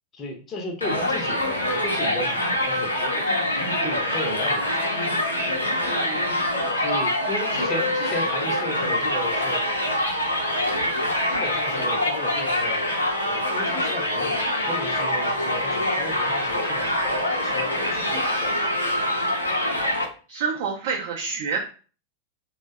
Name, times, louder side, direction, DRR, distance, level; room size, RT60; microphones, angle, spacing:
voice 1, 0.1-3.6 3.8-4.9 6.8-9.6 11.3-12.9 13.2-18.5, left 2 dB, 25° left, 1 dB, 0.6 m, -35 dB
Crowd, 0.8-20.0, left 1 dB, 85° left, 0.5 m, -25 dB
voice 2, 5.8-6.3 7.2-7.4 15.2-15.4 20.3-21.6, right 5 dB, 50° right, -1 dB, 0.5 m, -29 dB
2.5 x 2.1 x 2.4 m, 0.37 s
figure-of-eight pair, 90°, 0 cm